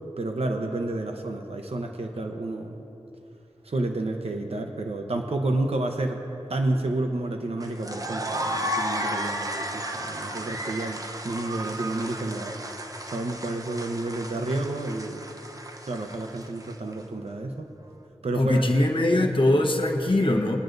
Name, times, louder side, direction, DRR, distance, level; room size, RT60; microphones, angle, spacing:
voice 1, 0.2-2.8 3.6-6.2 6.5-12.5 13.1-15.2 15.9-17.7 18.2-18.6, right 2 dB, 65° right, 3 dB, 0.8 m, -30 dB
sound 1, 7.6-16.9, equal, 30° right, 0.8 m, -34 dB
voice 2, 18.4-20.6, left 1 dB, 50° left, 2 dB, 1.0 m, -22 dB
22.5 x 9.2 x 2.6 m, 2.9 s
wide cardioid pair, 60°, 11 cm